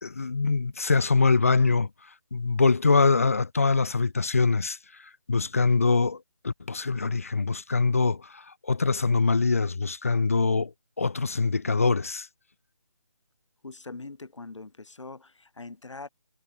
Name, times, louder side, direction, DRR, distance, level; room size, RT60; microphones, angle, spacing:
voice 1, 0.0-1.9 2.3-12.3, left 4 dB, 30° left, 0.4 m, -24 dB
voice 2, 13.6-16.1, left 3 dB, 90° left, 3.5 m, -42 dB
hypercardioid pair, 170°, 15 cm